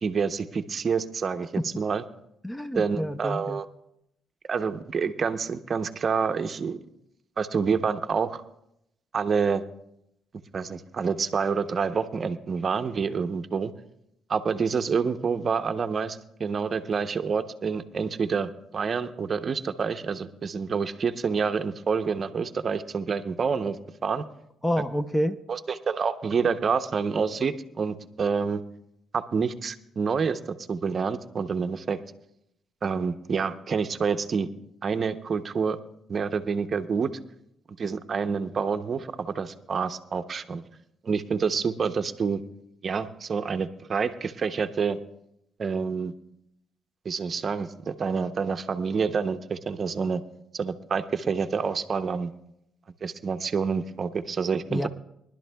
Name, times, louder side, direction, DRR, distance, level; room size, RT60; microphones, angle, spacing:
voice 1, 0.0-2.0 2.7-3.7 4.5-6.8 7.4-8.4 9.1-9.6 10.5-13.7 14.3-23.8 24.0-24.2 25.5-28.6 29.1-32.0 32.8-34.5 34.8-35.8 36.1-37.1 37.8-40.6 41.0-42.4 42.8-45.0 45.6-46.1 47.0-50.2 50.5-52.3 53.0-54.9, right 5 dB, 45° right, 8 dB, 0.7 m, -27 dB
voice 2, 2.4-3.6 24.6-25.4 54.7-54.9, equal, 15° left, 11 dB, 0.6 m, -28 dB
23.0 x 11.5 x 2.3 m, 0.79 s
cardioid pair, 90°, 0 cm